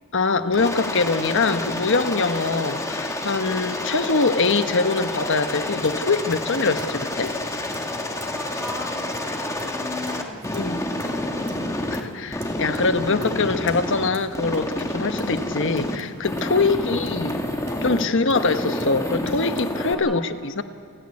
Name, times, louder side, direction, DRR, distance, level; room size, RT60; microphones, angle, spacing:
voice 1, 0.1-7.3 10.5-10.8 11.9-17.4 17.8-20.6, left 3 dB, 60° left, 9 dB, 1.1 m, -23 dB
Aircraft, 0.5-12.0 12.3-14.1 14.3-16.0 16.2-18.0 18.4-19.9, left 1 dB, 15° left, 1.8 m, -29 dB
sound 1, 5.5-19.6, right 1 dB, 35° right, 3.0 m, -44 dB
voice 2, 8.2-12.0 16.6-17.4 17.9-18.4 19.9-20.3, left 1 dB, ahead, 0 dB, 3.4 m, -39 dB
29.5 x 10.5 x 9.8 m, 2.4 s
head